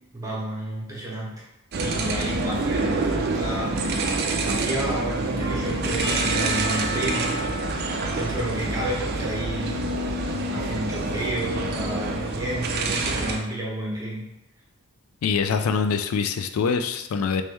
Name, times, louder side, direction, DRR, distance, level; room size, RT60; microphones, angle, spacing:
voice 1, 0.1-1.3 1.8-3.7 4.5-7.5 8.1-9.8 10.5-14.2, right 1 dB, 15° right, -5 dB, 0.9 m, -31 dB
sound 1, 1.7-13.4, right 2 dB, 50° right, 0.4 m, -27 dB
Percussion / Church bell, 6.0-10.0, equal, 65° left, 0.8 m, -35 dB
voice 2, 15.2-17.4, left 5 dB, 85° left, 9 dB, 0.3 m, -24 dB
3.2 x 3.0 x 3.3 m, 0.87 s
head